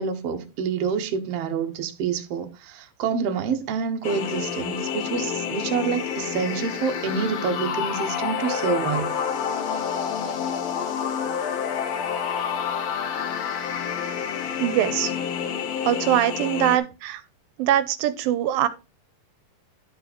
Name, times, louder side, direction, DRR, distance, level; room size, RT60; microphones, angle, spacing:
voice 1, 0.0-9.1, right 6 dB, 60° right, 1.7 m, -27 dB
sound 1, 4.0-16.8, left 7 dB, 65° left, 1.7 m, -28 dB
voice 2, 14.6-15.1 15.8-17.2 17.6-18.7, right 12 dB, 85° right, 2.4 m, -22 dB
11.5 x 4.7 x 4.3 m
omnidirectional pair, 4.2 m